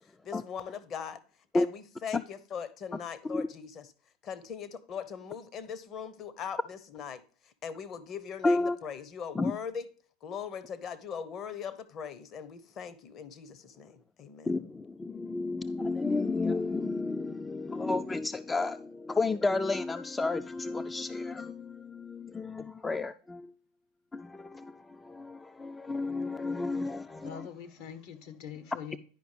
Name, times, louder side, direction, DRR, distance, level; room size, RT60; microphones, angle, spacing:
voice 1, 0.2-1.2 1.5-3.9 4.2-9.9 10.2-14.6, left 7 dB, 40° left, 0.9 m, -40 dB
voice 2, 8.4-8.8 9.4-9.5 14.5-23.5 24.1-24.7 25.0-27.4, left 3 dB, 15° left, 0.3 m, -31 dB
voice 3, 27.2-29.0, left 8 dB, 65° left, 1.1 m, -43 dB
10.5 x 5.2 x 3.2 m
hypercardioid pair, 95°, 0 cm